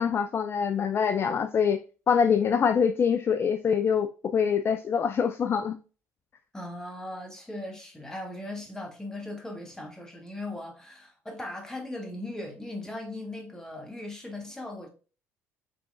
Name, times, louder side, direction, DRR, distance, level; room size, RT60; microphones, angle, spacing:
voice 1, 0.0-1.8 2.1-5.8, left 7 dB, 30° left, 0.3 m, -24 dB
voice 2, 6.5-14.9, left 1 dB, 5° left, 1.3 m, -38 dB
5.8 x 3.3 x 2.5 m
figure-of-eight pair, 55°, 8 cm